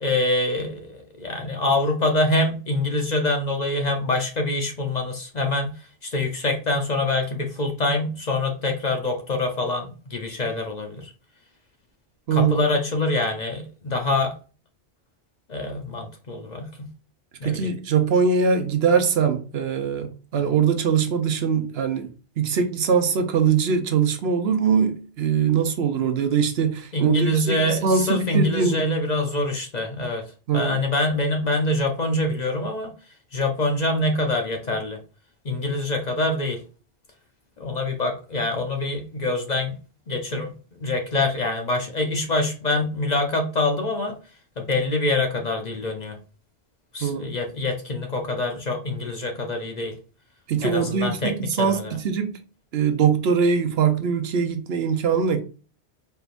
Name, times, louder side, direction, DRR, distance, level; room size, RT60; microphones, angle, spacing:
voice 1, 0.0-5.8 6.0-11.1 12.3-14.3 15.5-16.9 17.4-17.7 26.9-30.2 30.5-32.9 33.3-35.0 35.4-36.6 37.6-39.8 40.1-44.1 44.6-46.2 46.9-49.9 50.6-52.0, left 2 dB, 45° left, 0.7 m, -25 dB
voice 2, 17.4-22.1 22.4-28.8 30.5-30.8 47.0-47.3 50.5-52.3 52.7-55.4, right 6 dB, 70° right, 0.9 m, -22 dB
4.4 x 3.4 x 2.5 m
omnidirectional pair, 1.2 m